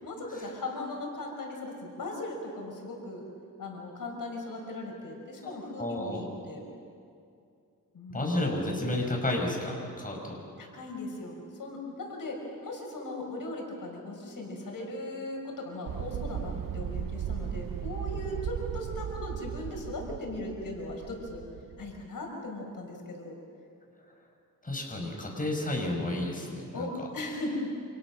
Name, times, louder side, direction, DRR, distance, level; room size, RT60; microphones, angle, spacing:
voice 1, 0.0-3.3 3.6-6.7 7.9-8.3 10.6-21.4 21.8-23.3 26.7-27.8, left 2 dB, 75° left, 1 dB, 5.2 m, -38 dB
voice 2, 5.4-6.2 8.1-10.4 24.6-27.1, left 1 dB, 25° left, 0 dB, 6.3 m, -32 dB
sound 1, 15.9-22.0, right 9 dB, 85° right, 0.9 m, -37 dB
29.0 x 27.0 x 6.4 m, 2.5 s
wide cardioid pair, 95°, 34 cm